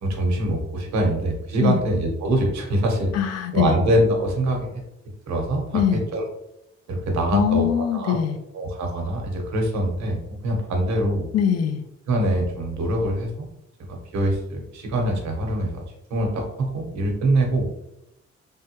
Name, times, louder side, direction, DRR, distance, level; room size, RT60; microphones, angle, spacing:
voice 1, 0.0-3.1 3.5-4.8 5.3-5.8 6.1-6.2 6.9-7.7 7.9-8.2 8.5-11.3 12.1-13.5 13.9-15.8 16.1-17.7, right 1 dB, 70° right, 1 dB, 0.9 m, -24 dB
voice 2, 3.1-3.7 5.7-6.0 7.3-8.4 11.3-11.8, left 8 dB, 55° left, 8 dB, 0.5 m, -22 dB
3.5 x 2.2 x 2.9 m, 0.84 s
cardioid pair, 90°, 30 cm